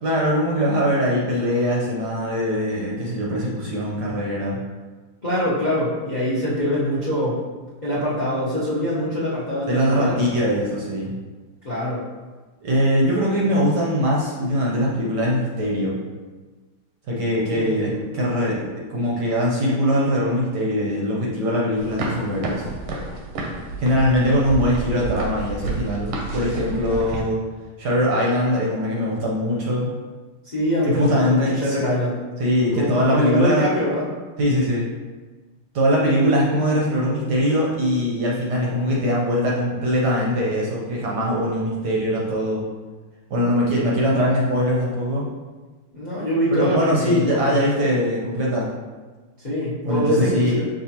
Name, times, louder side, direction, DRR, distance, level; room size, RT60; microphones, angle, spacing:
voice 1, 0.0-4.6 9.7-11.1 12.6-16.0 17.1-22.6 23.8-27.4 27.8-29.9 30.8-31.8 32.4-33.7 34.4-34.9 35.7-42.6 43.3-45.3 46.5-48.7 49.8-50.5, equal, 65° right, -4 dB, 1.1 m, -22 dB
voice 2, 5.2-7.4 7.8-10.2 11.6-12.0 17.5-18.0 30.5-32.2 32.7-34.1 45.9-47.6 49.4-50.6, equal, 50° left, -9 dB, 0.5 m, -24 dB
sound 1, 21.8-27.2, right 2 dB, 85° right, 1.6 m, -30 dB
6.6 x 2.5 x 2.8 m, 1.3 s
omnidirectional pair, 2.4 m